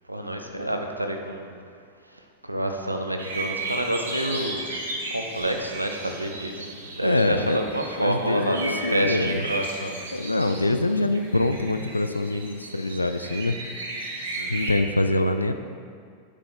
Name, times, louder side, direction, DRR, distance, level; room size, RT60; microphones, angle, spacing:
voice 1, 0.1-1.5 2.1-4.6 5.1-10.0 14.3-14.7, right 1 dB, 85° right, 4 dB, 0.8 m, -29 dB
sound 1, 3.2-14.7, right 2 dB, 70° right, 1.5 m, -35 dB
voice 2, 7.0-7.6 8.0-9.4 10.1-13.6 14.5-15.5, left 2 dB, 85° left, 9 dB, 0.4 m, -24 dB
8.7 x 6.9 x 4.7 m, 2.2 s
figure-of-eight pair, 90°, 0 cm